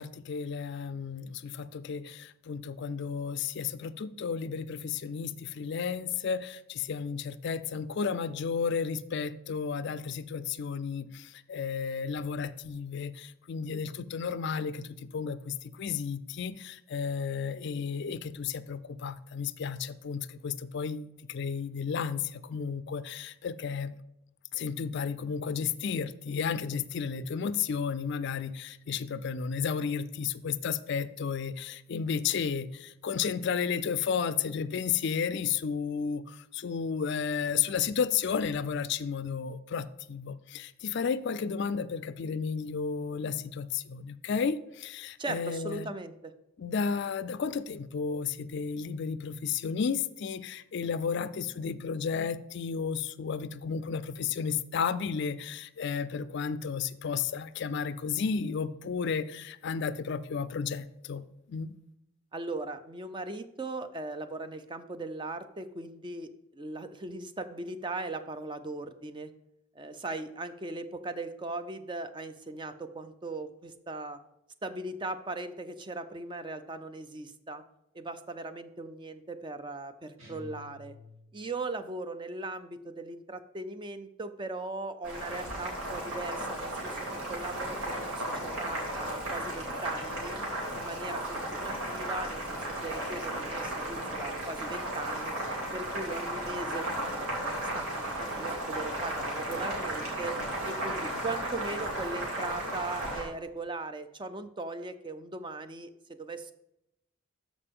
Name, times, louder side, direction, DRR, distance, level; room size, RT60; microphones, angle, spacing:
voice 1, 0.0-24.0 24.5-45.9 46.6-61.8, left 6 dB, 55° left, 0.4 m, -33 dB
voice 2, 45.2-46.3 62.3-69.3 69.7-74.2 74.6-77.6 77.9-80.9 81.3-90.4 90.7-95.3 95.7-97.3 97.7-100.4 100.7-106.5, right 2 dB, 20° right, 0.4 m, -39 dB
sound 1, 80.2-81.6, left 3 dB, 65° right, 2.4 m, -50 dB
Boiling, 85.0-103.2, right 1 dB, 90° right, 3.0 m, -35 dB
13.5 x 5.1 x 3.6 m
head